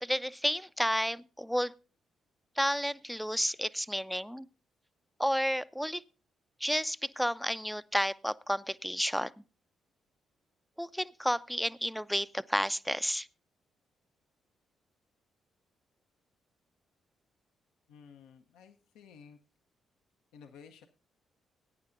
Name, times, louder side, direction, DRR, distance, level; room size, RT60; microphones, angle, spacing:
voice 1, 0.0-1.7 2.6-4.5 5.2-6.0 6.6-9.4 10.8-13.3, equal, ahead, 15 dB, 0.5 m, -31 dB
voice 2, 17.9-19.4 20.3-20.9, left 6 dB, 75° left, 4 dB, 0.8 m, -54 dB
19.5 x 9.6 x 2.6 m, 0.34 s
hypercardioid pair, 45°, 0 cm